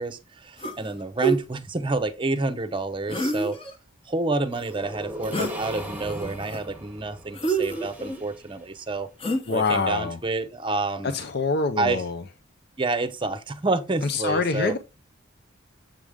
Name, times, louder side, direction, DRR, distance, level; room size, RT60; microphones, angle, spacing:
voice 1, 0.0-3.6 4.1-9.1 9.5-11.2 11.8-12.1 12.8-14.8, right 2 dB, 25° right, 0.7 m, -28 dB
sound 1, 0.6-0.9 1.2-1.4 3.1-3.7 5.3-5.6 6.0-6.6 7.3-8.2 9.2-9.7, right 3 dB, 30° left, 1.0 m, -27 dB
sound 2, 4.5-8.5, equal, 10° right, 1.1 m, -39 dB
voice 2, 9.5-10.2 11.1-12.2 14.0-14.8, left 4 dB, 55° left, 0.6 m, -25 dB
7.4 x 4.9 x 3.6 m
head